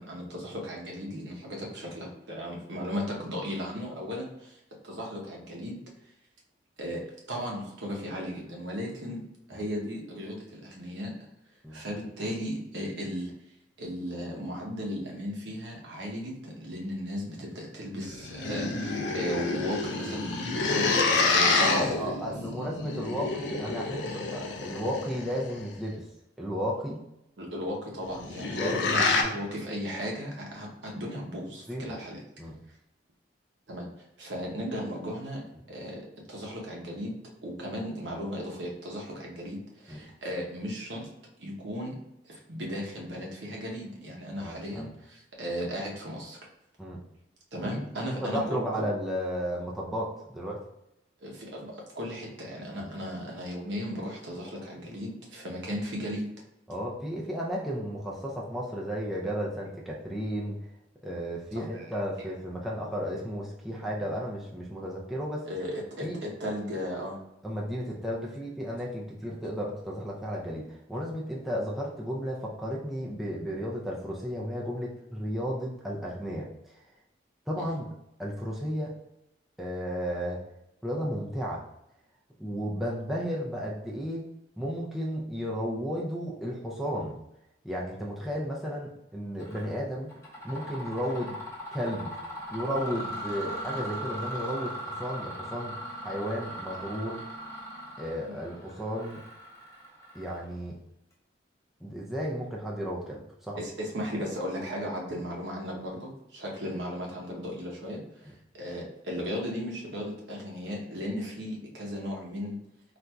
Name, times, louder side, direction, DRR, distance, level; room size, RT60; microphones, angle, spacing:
voice 1, 0.0-5.8 6.8-7.0 7.3-9.2 9.5-11.1 11.7-13.3 13.8-21.9 27.4-32.2 33.7-33.9 34.2-36.0 36.3-41.1 41.4-42.0 42.2-46.4 47.5-48.8 51.2-56.3 61.5-62.0 65.4-67.2 77.5-77.7 103.6-112.6, equal, 70° right, -1 dB, 0.8 m, -36 dB
sound 1, 18.0-25.6 28.0-29.2, left 3 dB, 70° left, 0.5 m, -28 dB
voice 2, 21.6-26.1 26.4-27.0 28.5-29.4 31.7-31.9 32.4-32.6 39.9-40.0 44.4-44.9 46.8-47.0 47.6-47.8 48.1-50.6 52.8-52.9 55.5-55.6 56.7-60.6 61.0-65.5 66.0-66.2 67.4-76.5 77.5-77.9 78.2-78.9 79.6-80.4 80.8-81.6 82.4-84.3 84.6-87.2 87.6-90.1 90.4-91.4 91.7-92.2 92.5-95.8 96.0-97.2 98.0-99.2 100.1-100.8 101.8-103.6, equal, ahead, -4 dB, 0.4 m, -33 dB
Mechanisms, 89.4-89.7 90.1-100.7, equal, 15° left, 0.8 m, -39 dB
4.1 x 2.5 x 2.2 m, 0.84 s
head